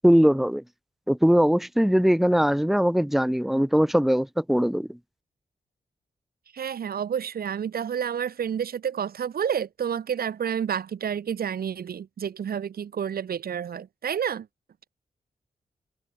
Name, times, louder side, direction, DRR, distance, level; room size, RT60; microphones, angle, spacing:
voice 1, 0.0-0.6 1.1-5.0, equal, ahead, 1.2 m, -21 dB
voice 2, 6.5-14.5, right 8 dB, 80° right, 2.9 m, -29 dB
cardioid pair, 60°, 15 cm